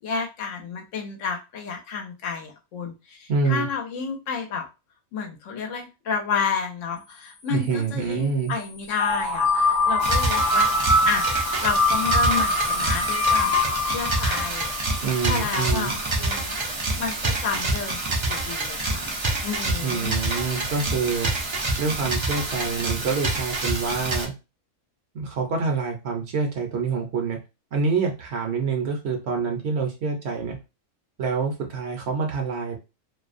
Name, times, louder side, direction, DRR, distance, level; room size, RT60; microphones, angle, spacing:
voice 1, 0.0-4.6 5.1-11.3 11.6-13.5 13.8-14.7 15.3-16.6 16.9-19.1 19.4-20.2, left 6 dB, 75° left, 3 dB, 1.0 m, -30 dB
voice 2, 3.3-3.7 7.5-8.5 15.0-15.9 19.6-21.3 21.8-24.3 25.1-27.4 27.7-30.6 31.2-32.8, right 5 dB, 65° right, 2 dB, 0.8 m, -26 dB
sound 1, 9.0-15.8, left 2 dB, 50° left, 0.9 m, -23 dB
sound 2, 10.0-24.3, right 2 dB, 45° right, 0.3 m, -27 dB
2.5 x 2.0 x 2.4 m, 0.27 s
omnidirectional pair, 1.3 m